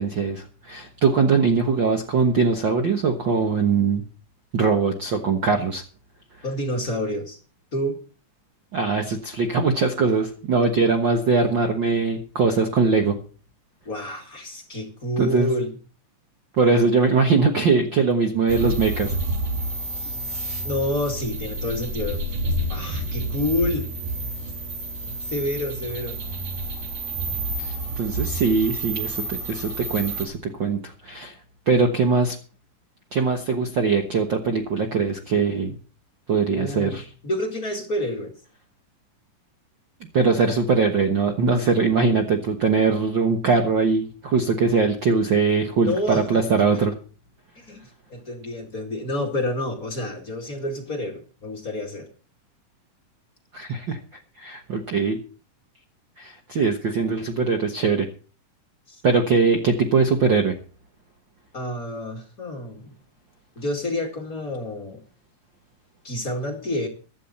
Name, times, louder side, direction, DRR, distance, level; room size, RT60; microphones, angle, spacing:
voice 1, 0.0-4.0 4.5-5.8 8.7-13.1 15.2-15.5 16.6-19.1 27.6-31.3 31.7-32.4 33.1-35.7 36.3-37.0 40.1-46.9 53.5-54.0 54.4-55.2 56.2-58.1 59.0-60.5, right 4 dB, 50° right, 5 dB, 1.5 m, -21 dB
voice 2, 6.4-7.4 7.7-8.0 13.9-15.7 20.0-20.2 20.6-22.2 22.7-23.9 25.2-26.2 36.5-37.0 37.2-38.3 45.8-46.3 47.7-47.8 48.1-52.1 58.9-59.0 61.5-63.0 63.6-65.0 66.0-66.9, left 1 dB, 30° left, 2 dB, 2.2 m, -28 dB
sound 1, 18.5-30.3, right 1 dB, 75° right, 3.7 m, -29 dB
15.5 x 12.0 x 4.2 m, 0.37 s
omnidirectional pair, 3.6 m